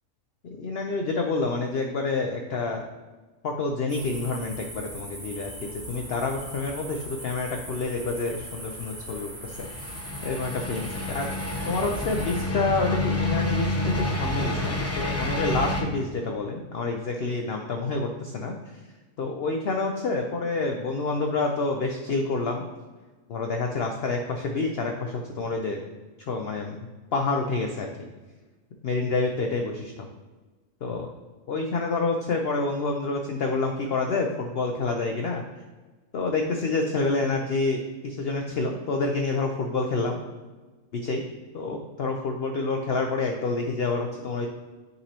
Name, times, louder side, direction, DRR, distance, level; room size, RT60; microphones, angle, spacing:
voice 1, 0.4-2.8 3.4-18.8 19.2-22.7 23.3-25.8 26.3-26.8 27.1-27.9 28.8-30.1 30.8-31.1 31.5-35.4 36.1-40.2 40.9-41.3 41.5-44.5, left 3 dB, 65° left, 3 dB, 0.6 m, -28 dB
sound 1, 3.9-12.4, right 1 dB, 25° right, 2.0 m, -40 dB
sound 2, 9.5-15.8, left 1 dB, 20° left, 0.4 m, -28 dB
9.8 x 4.0 x 2.9 m, 1.3 s
omnidirectional pair, 1.6 m